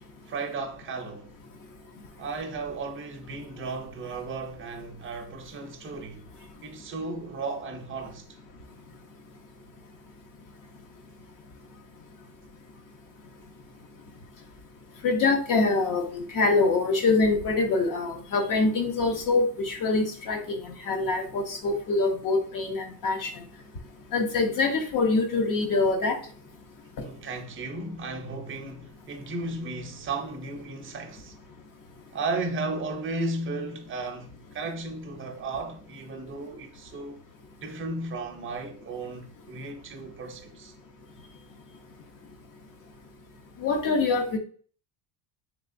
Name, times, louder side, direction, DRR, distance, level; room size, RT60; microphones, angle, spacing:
voice 1, 0.3-1.3 2.2-6.3 6.6-8.2 27.0-31.4 32.1-37.2 37.6-40.7, right 3 dB, 25° right, 0.6 m, -35 dB
voice 2, 15.0-23.3 24.1-26.2 43.6-44.4, left 3 dB, 45° left, 0.8 m, -25 dB
3.4 x 3.2 x 2.5 m
cardioid pair, 140°, 47 cm